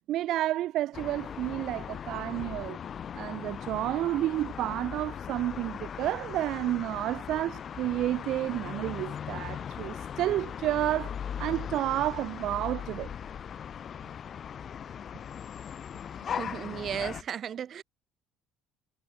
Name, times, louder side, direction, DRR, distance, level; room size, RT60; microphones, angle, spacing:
voice 1, 0.1-2.8 3.1-11.1 11.4-13.1, right 14 dB, 65° right, 1.1 m, -30 dB
sound 1, 0.9-17.2, left 8 dB, 45° left, 2.4 m, -39 dB
voice 2, 16.2-17.8, right 9 dB, 45° right, 2.8 m, -35 dB
cardioid pair, 100°, 0 cm